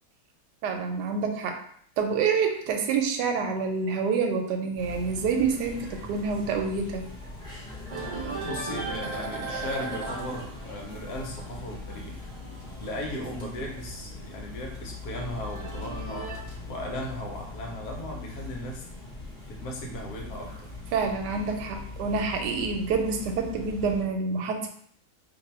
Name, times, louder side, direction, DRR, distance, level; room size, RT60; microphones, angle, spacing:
voice 1, 0.6-1.6 2.0-7.0 20.9-24.7, right 5 dB, 85° right, 5 dB, 1.2 m, -27 dB
sound 1, 4.8-24.0, left 3 dB, 5° left, 0.8 m, -41 dB
sound 2, 7.9-14.2 14.5-16.7, right 3 dB, 40° right, 0.5 m, -38 dB
voice 2, 8.5-12.3 12.8-16.3 16.7-18.9 19.5-20.7, left 1 dB, 75° left, 0 dB, 1.2 m, -37 dB
2.6 x 2.6 x 4.2 m, 0.63 s
omnidirectional pair, 1.8 m